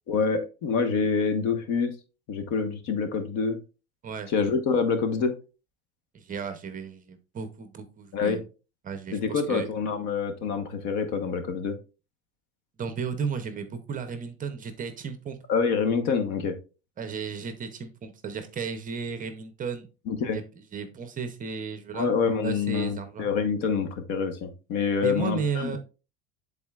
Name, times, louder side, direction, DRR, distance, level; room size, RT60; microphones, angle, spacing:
voice 1, 0.1-1.9 2.3-3.6 4.3-5.3 8.1-8.4 9.1-11.7 15.5-16.6 20.1-20.4 21.9-25.8, left 5 dB, 60° left, 8 dB, 1.3 m, -26 dB
voice 2, 6.1-8.4 8.8-9.7 12.8-15.4 17.0-19.9 20.3-22.1 22.4-23.3 25.0-25.8, right 6 dB, 25° right, 9 dB, 0.7 m, -34 dB
10.5 x 4.0 x 2.4 m, 0.32 s
supercardioid pair, 140°, 33 cm